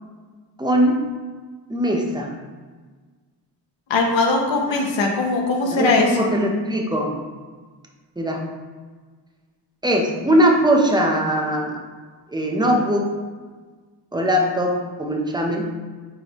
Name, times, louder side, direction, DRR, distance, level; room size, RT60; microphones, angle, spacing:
voice 1, 0.6-1.0 1.7-2.3 4.7-4.8 5.7-7.1 8.2-8.4 9.8-11.8 12.3-13.1 14.1-15.7, equal, 10° right, 0 dB, 0.8 m, -20 dB
voice 2, 3.9-6.3, left 3 dB, 85° left, 1 dB, 1.0 m, -20 dB
9.5 x 3.5 x 3.1 m, 1.4 s
wide cardioid pair, 140°, 44 cm